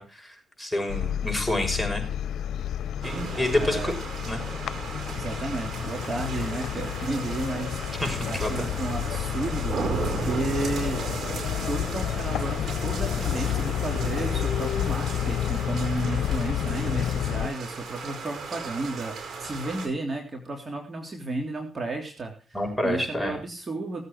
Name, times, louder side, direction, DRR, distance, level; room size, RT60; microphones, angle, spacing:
voice 1, 0.0-2.1 3.0-3.9 4.3-4.4 8.0-8.7 22.5-23.4, left 1 dB, 5° left, 2 dB, 6.2 m, -28 dB
sound 1, 0.9-17.5, left 11 dB, 85° left, 0.6 m, -30 dB
sound 2, 3.0-19.9, right 5 dB, 70° right, 4.9 m, -36 dB
voice 2, 3.3-3.9 4.9-11.1 11.6-24.0, right 2 dB, 40° right, 2 dB, 3.3 m, -33 dB
18.5 x 8.4 x 4.7 m, 0.34 s
cardioid pair, 75°, 0 cm